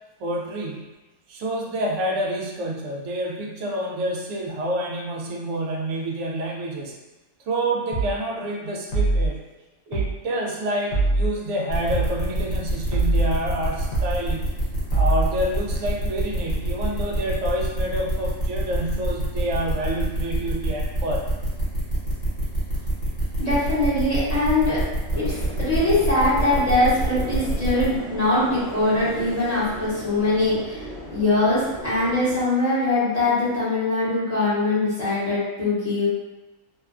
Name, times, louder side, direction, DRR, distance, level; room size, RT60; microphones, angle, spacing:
voice 1, 0.2-0.9 1.3-7.0 7.5-9.5 9.9-14.5 14.9-21.3, right 1 dB, 65° right, -1 dB, 0.8 m, -28 dB
sound 1, 7.9-8.2 8.9-9.3 9.9-10.2 10.9-11.3 11.9-12.2 12.9-13.3 13.9-14.2 14.9-15.3, right 2 dB, 80° left, 1.1 m, -22 dB
sound 2, 11.7-27.9, right 1 dB, 55° left, 1.2 m, -26 dB
voice 2, 23.4-24.8 25.1-30.8 31.1-36.1, left 2 dB, 35° left, -12 dB, 0.9 m, -22 dB
sound 3, 25.1-32.4, equal, 35° right, 0.9 m, -36 dB
2.8 x 2.1 x 2.4 m, 1.1 s
omnidirectional pair, 1.4 m